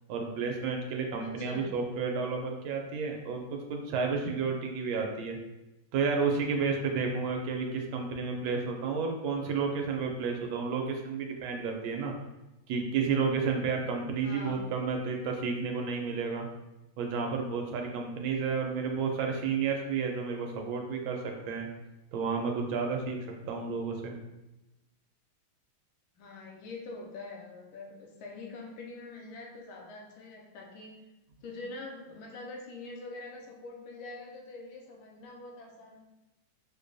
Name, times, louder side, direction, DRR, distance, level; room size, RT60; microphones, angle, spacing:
voice 1, 0.1-5.4 5.9-12.1 12.7-16.5 17.0-21.7 22.1-23.2 23.5-24.1, right 5 dB, 80° right, 2 dB, 1.3 m, -31 dB
voice 2, 1.2-1.7 14.2-14.7 26.2-31.0 31.4-36.0, left 3 dB, 80° left, 0 dB, 1.4 m, -44 dB
4.8 x 2.2 x 2.6 m, 0.99 s
omnidirectional pair, 2.3 m